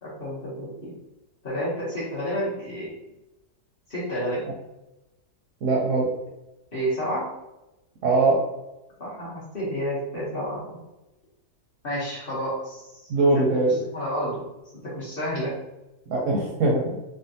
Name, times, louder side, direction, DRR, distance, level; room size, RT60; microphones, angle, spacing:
voice 1, 0.0-0.9 1.4-2.9 3.9-4.5 6.7-7.3 9.0-10.8 11.8-13.4 13.9-14.4 14.7-15.6, equal, 40° left, -7 dB, 0.9 m, -30 dB
voice 2, 5.6-6.1 8.0-8.4 13.1-13.7 16.1-17.0, right 2 dB, 70° right, -2 dB, 0.8 m, -21 dB
3.5 x 2.1 x 2.7 m, 0.97 s
omnidirectional pair, 1.7 m